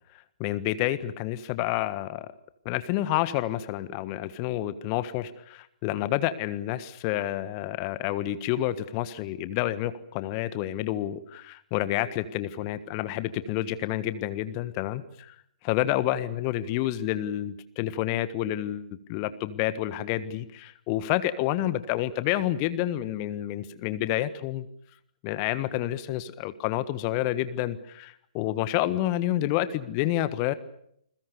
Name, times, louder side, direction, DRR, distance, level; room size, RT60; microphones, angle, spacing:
voice 1, 0.4-2.3 2.6-15.4 15.6-24.6 25.2-30.5, left 13 dB, 30° left, 14 dB, 1.4 m, -29 dB
29.5 x 22.0 x 6.9 m, 0.70 s
figure-of-eight pair, 125°, 4 cm